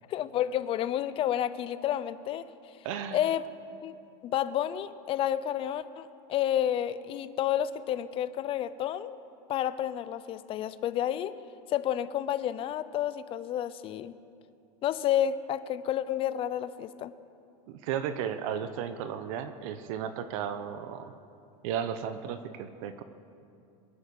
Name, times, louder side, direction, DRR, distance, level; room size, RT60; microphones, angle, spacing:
voice 1, 0.1-2.5 3.1-3.4 3.8-3.9 4.2-9.2 9.5-11.3 11.7-14.1 14.8-17.1, left 11 dB, 30° left, 15 dB, 0.5 m, -30 dB
voice 2, 2.8-3.2 17.7-21.1 21.6-23.0, right 8 dB, 60° right, 10 dB, 0.9 m, -34 dB
22.0 x 8.9 x 7.1 m, 2.5 s
supercardioid pair, 150°, 19 cm